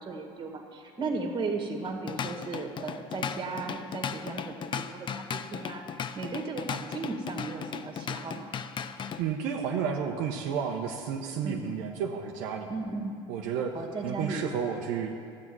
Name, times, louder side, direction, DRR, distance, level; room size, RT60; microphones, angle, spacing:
voice 1, 0.0-8.5 11.4-11.7 12.7-13.1 13.7-14.5, right 3 dB, 35° right, 2 dB, 1.9 m, -36 dB
Drum kit / Drum, 1.8-9.2, left 7 dB, 35° left, 0.5 m, -36 dB
voice 2, 9.2-12.7 13.3-13.7 14.0-15.1, right 7 dB, 70° right, 0 dB, 0.9 m, -31 dB
12.0 x 8.7 x 6.1 m, 2.5 s
supercardioid pair, 90°, 14 cm